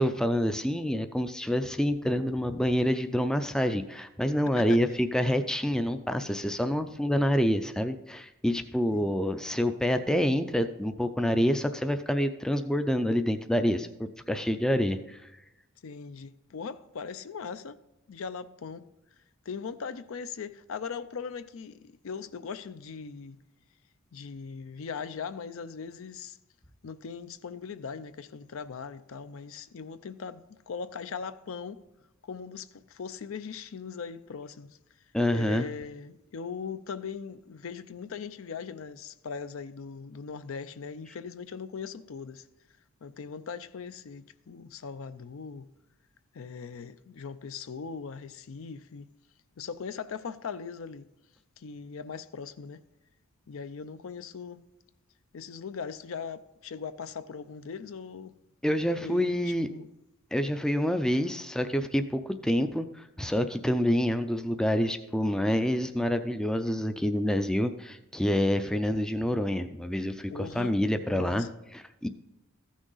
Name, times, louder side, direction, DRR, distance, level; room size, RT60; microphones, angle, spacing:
voice 1, 0.0-15.2 35.1-35.7 58.6-59.7 60.3-72.1, equal, 5° left, 0.4 m, -27 dB
voice 2, 15.8-17.8 18.1-18.9 19.5-23.4 24.1-26.4 26.8-31.8 32.2-34.8 35.3-42.4 43.0-45.7 46.3-49.1 49.6-51.1 51.6-52.8 53.5-54.6 55.3-58.3 59.0-59.9 70.3-70.8 71.1-71.5, left 5 dB, 70° left, 0.5 m, -40 dB
14.5 x 6.3 x 3.9 m
head